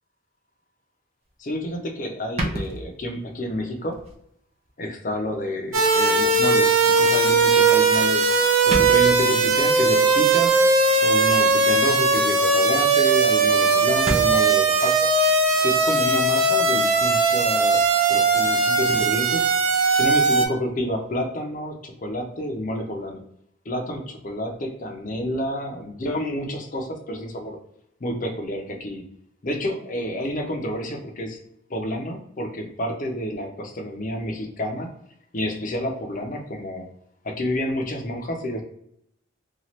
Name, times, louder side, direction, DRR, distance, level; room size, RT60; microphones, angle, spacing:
voice 1, 1.4-4.0 4.8-8.2 8.6-10.6 11.0-15.1 15.6-19.5 19.9-23.2 23.7-27.6 28.0-29.0 29.4-31.4 31.7-34.9 35.3-36.9 37.2-38.6, equal, 40° left, 3 dB, 0.5 m, -29 dB
sound 1, 1.5-1.6 2.4-3.3 3.9-4.2 4.7-4.8 6.0-6.1 7.8-8.1 8.4-8.5 8.7-9.3 11.3-11.7 12.1-12.4 12.7-12.8 13.0-13.1 13.4-13.5 13.8-14.4, right 1 dB, 30° right, 0.5 m, -30 dB
sound 2, 5.7-20.5, right 3 dB, 85° right, 0.5 m, -19 dB
2.8 x 2.3 x 3.0 m, 0.72 s
head